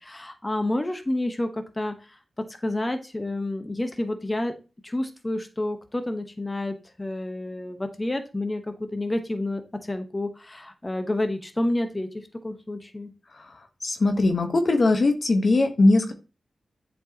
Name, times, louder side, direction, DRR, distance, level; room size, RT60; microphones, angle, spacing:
voice 1, 0.0-4.5 4.8-13.1, left 1 dB, 25° left, 7 dB, 1.0 m, -29 dB
voice 2, 13.8-16.1, left 2 dB, 60° left, 6 dB, 1.1 m, -20 dB
8.1 x 4.5 x 2.9 m, 0.32 s
cardioid pair, 40°, 0 cm